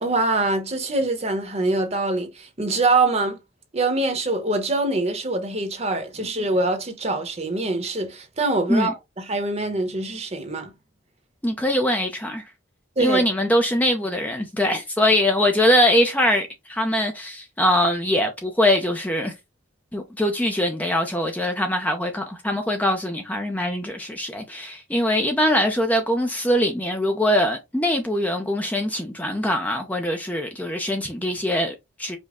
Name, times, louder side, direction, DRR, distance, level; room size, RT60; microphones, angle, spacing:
voice 1, 0.0-3.4 3.7-10.7 13.0-13.2, right 2 dB, 30° right, 1.0 m, -24 dB
voice 2, 11.4-12.4 13.0-19.3 19.9-32.2, left 1 dB, 10° left, 0.6 m, -22 dB
5.2 x 2.3 x 3.6 m
head